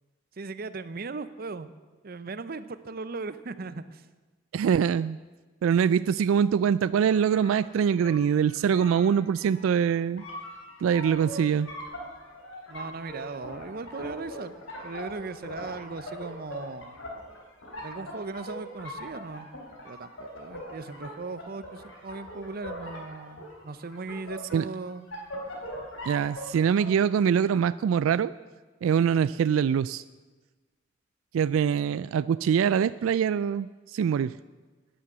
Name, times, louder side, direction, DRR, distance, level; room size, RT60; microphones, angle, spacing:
voice 1, 0.3-1.7 2.0-4.1 12.7-14.5 14.8-17.0 17.8-19.5 19.8-25.1, right 3 dB, 50° right, 13 dB, 0.6 m, -38 dB
voice 2, 4.5-5.2 5.6-10.2 10.8-11.7 24.5-24.7 26.1-28.3 28.8-30.0 31.3-34.3, right 7 dB, 90° right, 17 dB, 0.3 m, -24 dB
sound 1, 7.1-26.9, equal, 80° left, 3.6 m, -41 dB
11.0 x 10.0 x 8.1 m, 1.3 s
head